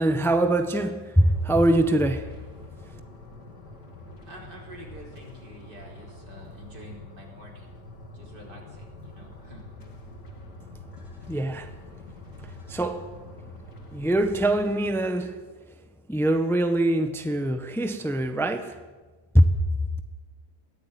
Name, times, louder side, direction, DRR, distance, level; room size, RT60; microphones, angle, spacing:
voice 1, 0.0-2.3 11.3-11.7 12.7-13.1 13.9-15.4 16.1-18.8 19.3-19.5, right 1 dB, ahead, 8 dB, 1.2 m, -23 dB
sound 1, 1.2-14.9, left 2 dB, 80° left, 3.5 m, -45 dB
voice 2, 4.3-7.7 8.1-9.6, equal, 80° right, 0 dB, 5.6 m, -46 dB
22.0 x 16.0 x 9.4 m, 1.3 s
omnidirectional pair, 1.8 m